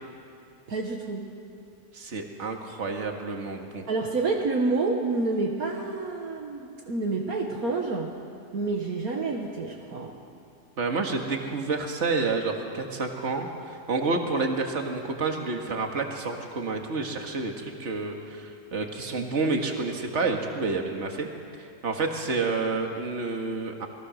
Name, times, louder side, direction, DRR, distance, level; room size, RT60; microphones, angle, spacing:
voice 1, 0.7-1.3 3.9-8.2 8.5-10.2, right 3 dB, 60° right, 1 dB, 1.9 m, -28 dB
voice 2, 1.9-3.9 10.8-21.3 21.6-23.9, right 3 dB, 45° right, 3 dB, 2.1 m, -29 dB
28.0 x 20.5 x 6.4 m, 2.5 s
omnidirectional pair, 1.8 m